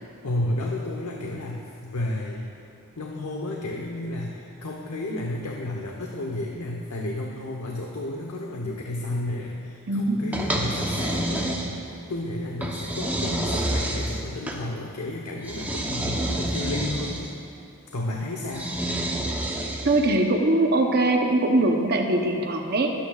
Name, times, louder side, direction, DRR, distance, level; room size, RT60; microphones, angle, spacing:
voice 1, 0.2-2.5 3.0-11.8 12.1-17.4 17.9-18.7, left 1 dB, 90° left, 0 dB, 0.9 m, -32 dB
voice 2, 9.9-10.5 19.8-22.9, right 2 dB, 45° right, 2 dB, 0.8 m, -22 dB
sound 1, 10.3-12.0 12.6-14.6 15.4-17.3 18.5-20.1, right 1 dB, 10° right, 0.8 m, -28 dB
21.5 x 8.8 x 2.4 m, 2.8 s
head